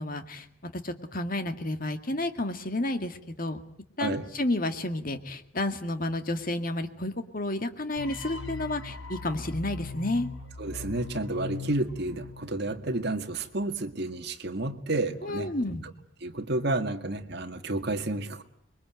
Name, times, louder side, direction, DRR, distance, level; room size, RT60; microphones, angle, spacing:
voice 1, 0.0-3.6 4.0-10.3 15.2-15.8, left 1 dB, 45° left, 8 dB, 2.1 m, -31 dB
sound 1, 8.0-13.1, left 3 dB, 75° left, 4.4 m, -40 dB
voice 2, 10.6-15.8 16.2-18.4, right 2 dB, 55° right, 6 dB, 2.0 m, -31 dB
26.5 x 22.5 x 9.2 m, 0.71 s
head